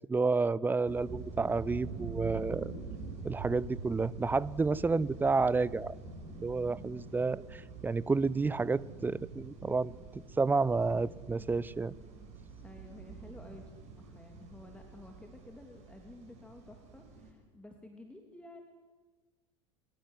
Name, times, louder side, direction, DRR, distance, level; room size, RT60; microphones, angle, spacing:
voice 1, 0.1-2.7 3.2-5.9 6.4-11.9, right 4 dB, 10° right, 22 dB, 0.7 m, -30 dB
sound 1, 0.9-17.3, right 3 dB, 45° right, 7.1 m, -46 dB
voice 2, 4.9-5.2 12.6-13.7 14.0-18.7, left 1 dB, 5° left, 3 dB, 2.9 m, -52 dB
23.0 x 22.5 x 9.9 m, 1.3 s
figure-of-eight pair, 75°, 16 cm